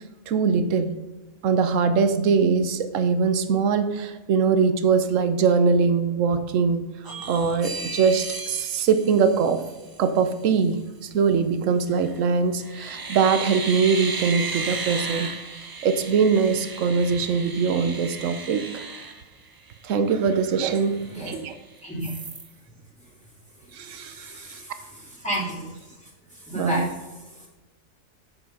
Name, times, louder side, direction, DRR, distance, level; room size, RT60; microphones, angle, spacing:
voice 1, 0.3-1.0 1.4-6.8 7.3-9.6 10.0-15.3 15.8-18.7 19.8-21.0 21.3-21.5 23.7-24.6 26.5-26.9, right 5 dB, 80° right, 10 dB, 1.1 m, -22 dB
sound 1, 7.0-10.1 11.9-12.2 12.6-19.9 20.3-20.4 20.7-21.6 22.0-22.5, right 4 dB, 35° right, 0.3 m, -35 dB
voice 2, 20.7-21.4 21.8-22.1 23.6-25.7 26.3-27.0 27.3-27.4, equal, 5° left, -6 dB, 2.9 m, -33 dB
8.6 x 6.1 x 5.5 m, 1.1 s
omnidirectional pair, 1.3 m